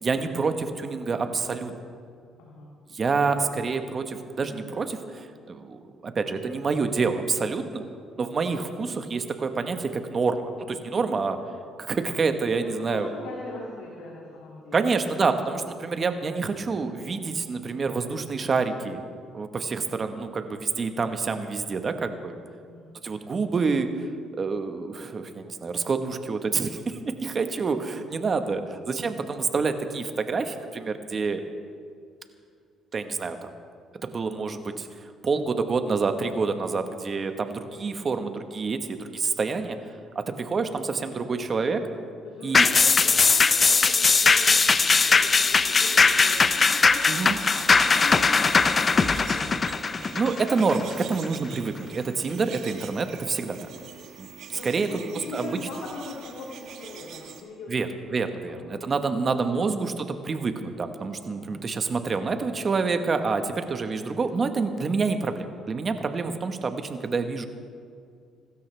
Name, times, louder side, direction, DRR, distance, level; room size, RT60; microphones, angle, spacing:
voice 1, 0.0-1.8 2.9-7.9 8.2-11.4 11.8-13.1 14.7-19.0 19.3-22.4 23.0-24.1 24.3-31.4 32.9-33.5 34.0-34.9 35.2-39.8 40.1-41.9 42.4-42.7 47.1-47.4 50.1-53.6 54.2-54.9 55.3-55.5 57.7-67.5, right 4 dB, 40° right, 7 dB, 1.3 m, -27 dB
voice 2, 2.4-2.7 12.6-14.8 15.2-15.3 22.6-23.0 28.3-28.4 42.2-47.2 47.8-50.1 54.5-59.6 61.2-61.6, left 3 dB, 85° left, -4 dB, 2.5 m, -41 dB
sound 1, 42.5-51.3 51.7-51.8, left 4 dB, 35° left, 0.6 m, -20 dB
sound 2, 44.4-57.4, right 8 dB, 70° right, 1.5 m, -43 dB
25.0 x 13.0 x 3.4 m, 2.2 s
cardioid pair, 80°, 0 cm